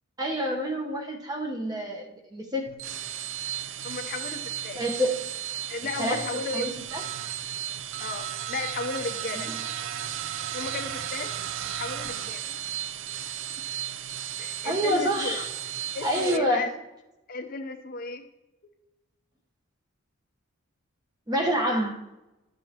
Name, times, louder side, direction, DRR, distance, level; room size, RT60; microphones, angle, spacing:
voice 1, 0.2-2.7 4.7-5.3 6.0-6.3 6.5-7.0 9.4-9.5 14.6-15.5 16.0-16.7 21.3-22.0, equal, 20° right, 1 dB, 1.0 m, -27 dB
sound 1, 2.7-16.4, right 10 dB, 60° right, 0.4 m, -34 dB
voice 2, 3.8-4.8 5.7-6.7 8.0-9.5 10.5-11.3 11.7-12.6 14.4-15.4 15.9-16.7 17.3-18.2, left 3 dB, 40° left, 6 dB, 0.7 m, -34 dB
13.0 x 7.2 x 2.9 m, 1.0 s
head